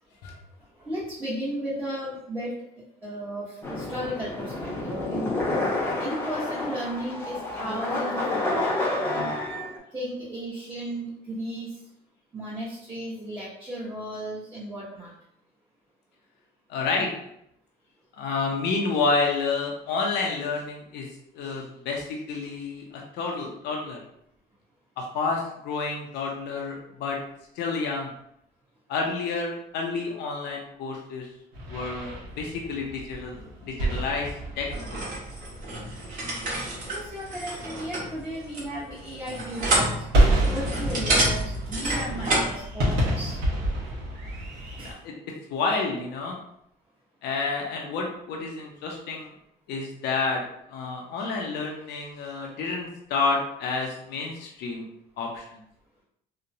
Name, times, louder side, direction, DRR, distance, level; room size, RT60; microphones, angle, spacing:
voice 1, 0.8-2.5 3.0-5.3 6.0-8.7 9.9-11.7 12.3-15.1 36.9-40.0 40.5-43.4 44.8-44.9, equal, 15° right, -11 dB, 1.0 m, -34 dB
sound 1, 3.6-9.8, left 2 dB, 15° left, 0.8 m, -29 dB
voice 2, 16.7-17.1 18.2-21.1 21.3-24.0 25.0-27.2 27.6-28.1 28.9-31.3 31.7-35.0 44.8-45.1 45.5-46.4 47.2-49.3 49.7-50.4 50.7-54.8 55.2-55.6, left 4 dB, 80° left, 0 dB, 0.6 m, -29 dB
sound 2, 31.5-44.9, right 1 dB, 80° right, 1.1 m, -29 dB
sound 3, 34.7-42.6, right 1 dB, 50° right, 1.2 m, -29 dB
2.9 x 2.1 x 2.6 m, 0.75 s
cardioid pair, 110°, 17 cm